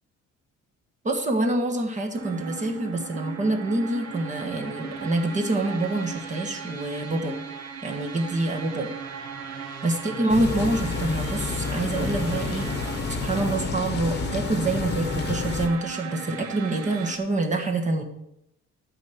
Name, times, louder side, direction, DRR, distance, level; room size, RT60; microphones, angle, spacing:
voice 1, 1.0-7.4 7.8-8.9 9.8-12.7 13.1-18.0, right 2 dB, 25° right, 3 dB, 1.4 m, -26 dB
sound 1, 2.1-17.2, right 6 dB, 60° right, 1.4 m, -37 dB
sound 2, 10.3-15.7, left 5 dB, 35° left, 1.1 m, -29 dB
12.5 x 4.5 x 7.9 m, 0.81 s
cardioid pair, 145°, 29 cm